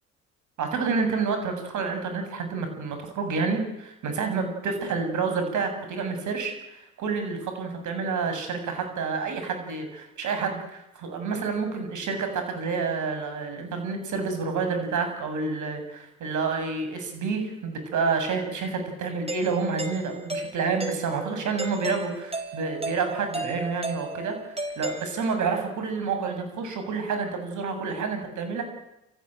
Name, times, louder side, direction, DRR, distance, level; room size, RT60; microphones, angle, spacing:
voice 1, 0.6-28.6, right 4 dB, 65° right, 6 dB, 7.6 m, -29 dB
Doorbell, 19.3-25.6, right 2 dB, 20° right, 4.6 m, -35 dB
29.0 x 15.0 x 9.2 m, 0.90 s
supercardioid pair, 70°, 32 cm